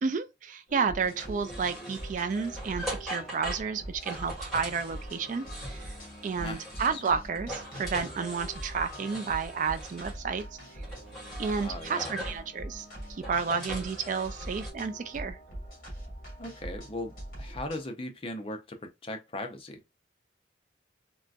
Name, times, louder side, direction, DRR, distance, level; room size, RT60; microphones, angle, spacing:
voice 1, 0.0-6.0 6.2-10.4 10.8-10.9 11.4-15.4, right 5 dB, 40° right, 0.3 m, -31 dB
sound 1, 0.7-17.9, right 1 dB, 50° left, 1.8 m, -42 dB
sound 2, 1.0-7.1 7.4-10.2 10.8-12.5 13.0-14.7, equal, ahead, 1.7 m, -42 dB
voice 2, 6.4-7.0 11.5-12.1 16.4-17.1 17.4-19.8, left 1 dB, 30° left, 0.6 m, -38 dB
3.8 x 2.4 x 2.3 m
head